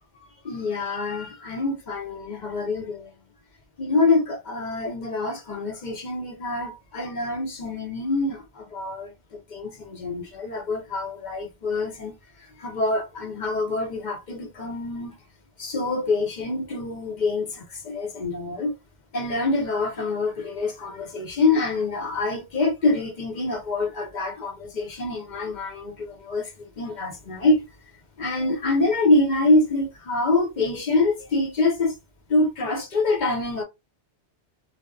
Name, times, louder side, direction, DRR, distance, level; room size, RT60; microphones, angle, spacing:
voice 1, 0.4-3.1 3.8-12.1 12.6-15.1 15.6-18.7 19.1-27.6 28.2-32.0 32.3-33.6, left 2 dB, 50° left, 0.6 m, -25 dB
2.7 x 2.0 x 2.3 m
omnidirectional pair, 1.1 m